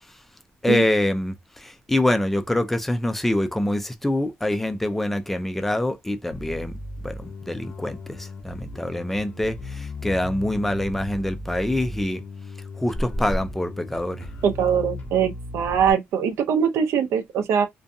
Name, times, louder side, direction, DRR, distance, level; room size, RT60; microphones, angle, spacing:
voice 1, 0.6-12.2 12.8-14.3, left 1 dB, 5° left, 0.3 m, -25 dB
Bass guitar, 6.3-15.9, left 2 dB, 35° left, 0.6 m, -37 dB
voice 2, 14.4-17.7, right 7 dB, 70° right, 0.5 m, -22 dB
2.5 x 2.2 x 2.6 m
cardioid pair, 170°, 5 cm